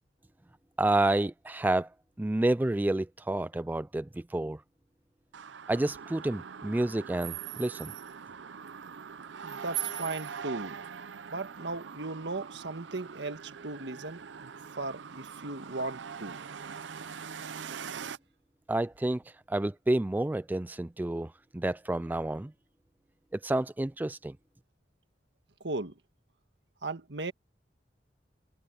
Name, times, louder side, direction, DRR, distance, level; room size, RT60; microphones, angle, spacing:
voice 1, 0.8-1.9 2.2-4.6 5.7-7.9 18.7-19.2 19.5-22.5 23.4-24.4, right 1 dB, 10° right, 0.3 m, -29 dB
sound 1, 5.3-18.2, right 8 dB, 85° right, 0.6 m, -42 dB
voice 2, 9.4-10.8 11.3-14.5 14.8-16.4 25.6-25.9 26.8-27.3, right 2 dB, 70° right, 1.6 m, -37 dB
head